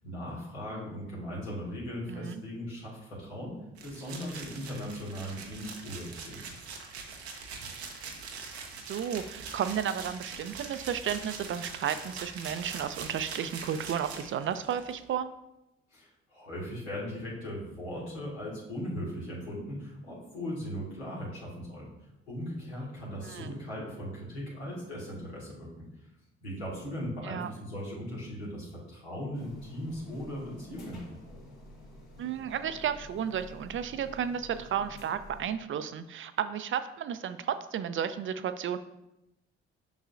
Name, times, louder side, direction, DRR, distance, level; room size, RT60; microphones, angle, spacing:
voice 1, 0.0-3.6 3.8-6.4 15.9-21.9 22.3-25.9 26.4-31.0, equal, 85° left, -6 dB, 1.7 m, -38 dB
voice 2, 2.1-2.4 8.9-15.3 23.2-23.5 27.2-27.5 32.2-38.8, right 8 dB, 40° right, 11 dB, 0.4 m, -33 dB
sound 1, 3.8-14.9, right 5 dB, 85° right, 0.7 m, -43 dB
sound 2, 29.3-35.5, left 1 dB, 60° left, 1.6 m, -50 dB
7.0 x 5.4 x 2.5 m, 0.91 s
figure-of-eight pair, 45°, 32 cm